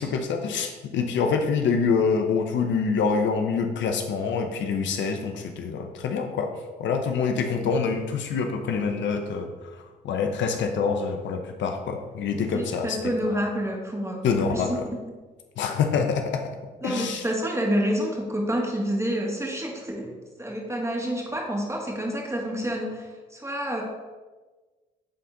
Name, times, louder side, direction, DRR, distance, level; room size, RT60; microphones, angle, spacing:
voice 1, 0.0-6.5 6.8-13.0 14.2-14.8 15.6-16.4 16.8-17.2, left 5 dB, 65° left, 5 dB, 0.8 m, -26 dB
voice 2, 12.3-14.8 16.8-23.8, equal, 15° right, -1 dB, 2.2 m, -28 dB
9.0 x 4.2 x 3.9 m, 1.3 s
hypercardioid pair, 55°, 20 cm